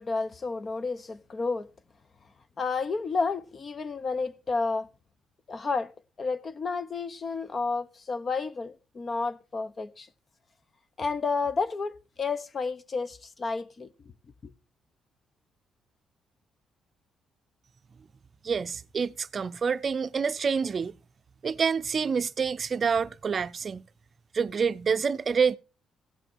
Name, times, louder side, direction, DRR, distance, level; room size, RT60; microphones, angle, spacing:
voice 1, 0.0-1.7 2.6-4.9 5.5-5.9 6.2-10.1 11.0-14.1 14.4-14.5, left 4 dB, 40° left, 1.0 m, -31 dB
voice 2, 18.4-20.9 21.4-23.8 24.3-25.6, right 6 dB, 45° right, 0.6 m, -27 dB
16.5 x 5.9 x 4.5 m
cardioid pair, 90°, 0 cm